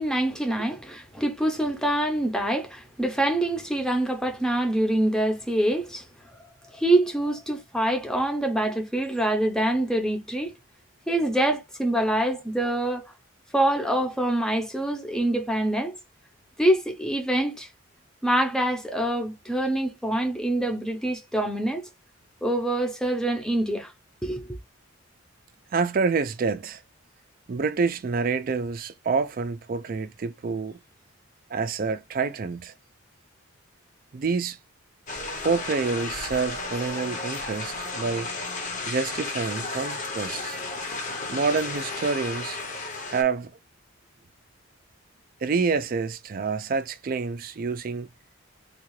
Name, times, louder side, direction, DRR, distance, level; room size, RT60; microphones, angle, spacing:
voice 1, 0.0-6.1 6.7-10.5 11.1-13.1 13.5-16.0 16.6-17.7 18.2-21.9 22.4-23.9 24.2-24.5, right 1 dB, 5° left, 0.6 m, -25 dB
voice 2, 25.7-26.8 27.5-30.8 31.5-32.7 34.1-34.6 35.4-38.3 38.9-40.6 41.3-42.6 43.1-43.5 45.4-48.1, right 4 dB, 45° right, 0.3 m, -27 dB
sound 1, 35.1-43.2, left 3 dB, 35° left, 0.8 m, -33 dB
3.6 x 2.4 x 3.0 m
head